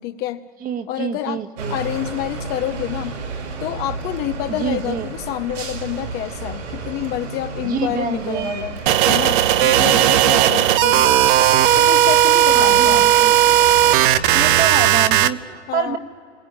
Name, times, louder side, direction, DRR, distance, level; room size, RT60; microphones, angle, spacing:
voice 1, 0.0-0.4 0.9-1.4 1.7-3.2 3.6-11.2 11.7-13.1 15.7-16.0, left 13 dB, 25° left, 8 dB, 0.8 m, -28 dB
voice 2, 0.6-1.8 4.5-5.1 7.6-8.5 10.0-10.5 12.5-13.3 14.3-16.0, right 7 dB, 25° right, 8 dB, 1.5 m, -26 dB
sound 1, 1.6-14.8, right 4 dB, 75° right, 5.9 m, -31 dB
sound 2, 8.9-15.3, right 12 dB, 45° right, 1.0 m, -15 dB
29.0 x 21.5 x 8.9 m, 2.3 s
hypercardioid pair, 135°, 36 cm